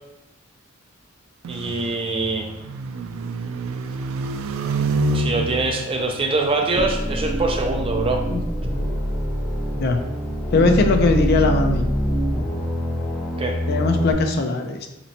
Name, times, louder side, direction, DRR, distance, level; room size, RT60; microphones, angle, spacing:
sound 1, 1.4-6.9, right 2 dB, 90° right, 0.3 m, -28 dB
voice 1, 1.5-2.5 5.1-8.3 13.4-13.6, right 2 dB, 25° right, 2 dB, 0.5 m, -24 dB
sound 2, 6.7-14.1, equal, ahead, 1.1 m, -25 dB
voice 2, 10.5-11.9 13.7-14.9, left 3 dB, 50° left, 5 dB, 0.4 m, -20 dB
4.2 x 2.9 x 2.7 m, 0.92 s
head